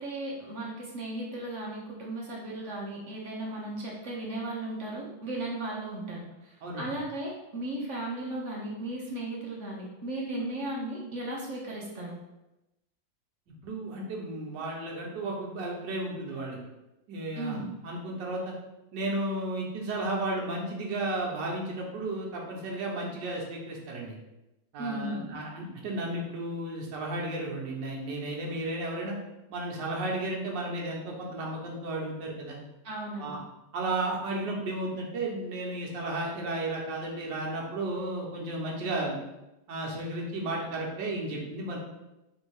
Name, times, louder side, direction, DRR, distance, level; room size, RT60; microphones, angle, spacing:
voice 1, 0.0-12.2 17.4-17.7 24.8-25.2 32.8-33.4, right 1 dB, 55° right, -3 dB, 0.9 m, -36 dB
voice 2, 13.6-16.6 17.1-18.5 18.9-24.2 24.7-29.1 29.5-32.6 33.2-33.4 33.7-39.2 39.7-41.8, right 2 dB, 70° right, -2 dB, 1.6 m, -33 dB
4.0 x 2.7 x 4.7 m, 0.95 s
omnidirectional pair, 2.0 m